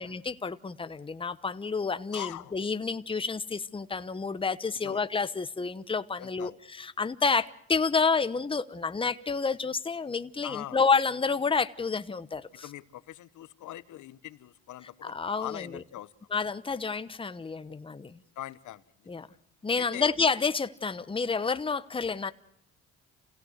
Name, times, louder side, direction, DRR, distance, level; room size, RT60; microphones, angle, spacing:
voice 1, 0.0-12.7 15.0-15.8 16.3-18.2 19.1-19.3 19.6-22.3, left 4 dB, 20° left, 0.9 m, -29 dB
voice 2, 2.1-2.5 4.8-5.0 6.2-6.6 10.4-10.8 12.6-16.1 18.4-18.8 19.2-19.3 19.8-20.1, left 13 dB, 75° left, 1.0 m, -42 dB
28.0 x 16.5 x 8.0 m
cardioid pair, 90°, 30 cm